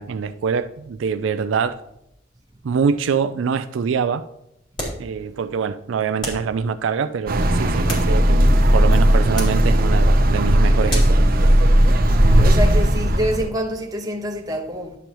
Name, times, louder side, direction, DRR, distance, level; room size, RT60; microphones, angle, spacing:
voice 1, 0.0-1.8 2.6-4.2 5.0-11.2, right 6 dB, 80° right, 0.4 m, -24 dB
sound 1, 4.7-5.1 6.2-6.5 7.6-8.5 9.3-9.7 10.9-11.2, equal, 25° left, 2.9 m, -30 dB
sound 2, 7.3-13.5, equal, 50° right, 0.8 m, -16 dB
voice 2, 11.9-15.0, equal, 20° right, 1.0 m, -27 dB
11.0 x 6.9 x 3.0 m
head